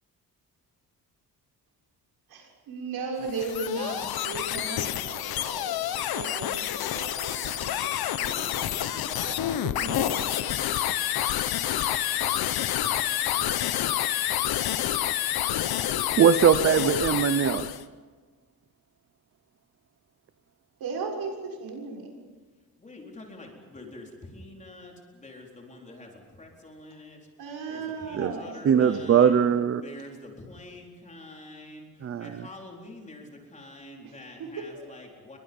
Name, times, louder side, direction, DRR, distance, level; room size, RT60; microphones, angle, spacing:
voice 1, 2.3-5.7 6.1-10.5 20.8-22.1 27.4-29.6 34.0-34.1 34.4-34.5, right 4 dB, 75° right, 0 dB, 6.6 m, -37 dB
sound 1, 3.2-17.8, left 12 dB, 75° left, 1.1 m, -28 dB
voice 2, 12.5-13.8 22.8-27.3 27.7-29.4 29.8-35.4, left 2 dB, 20° left, 0 dB, 4.3 m, -46 dB
voice 3, 16.2-17.7 28.2-28.3 28.6-29.8 32.0-32.3, right 8 dB, 35° right, 12 dB, 0.7 m, -20 dB
29.5 x 23.5 x 5.5 m, 1.4 s
cardioid pair, 175°, 37 cm